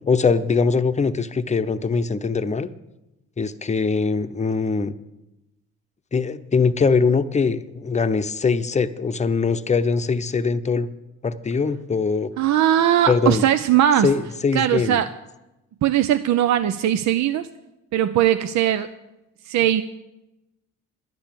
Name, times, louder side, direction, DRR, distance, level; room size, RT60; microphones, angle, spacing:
voice 1, 0.1-2.7 3.4-4.9 6.1-10.9 11.2-12.3 13.1-13.4 14.0-15.0, left 5 dB, 25° left, 10 dB, 0.8 m, -22 dB
voice 2, 12.4-14.1 14.5-15.1 15.8-17.5 17.9-18.9 19.4-19.8, right 11 dB, 65° right, 11 dB, 0.6 m, -19 dB
11.0 x 10.0 x 7.5 m, 0.96 s
cardioid pair, 90°, 30 cm